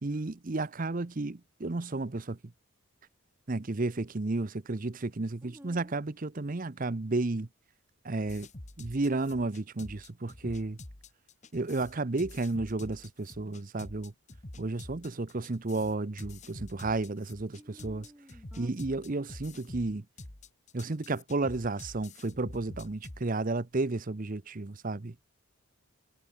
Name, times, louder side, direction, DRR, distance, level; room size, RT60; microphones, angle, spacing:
voice 1, 0.0-2.4 3.5-7.5 8.0-8.5 8.8-10.8 11.5-14.1 14.6-18.1 18.6-20.1 20.7-25.2, right 2 dB, 40° right, 0.7 m, -32 dB
voice 2, 5.4-5.9 17.6-19.0, equal, 10° right, 5.3 m, -53 dB
sound 1, 8.3-23.2, left 2 dB, 35° left, 1.7 m, -47 dB
head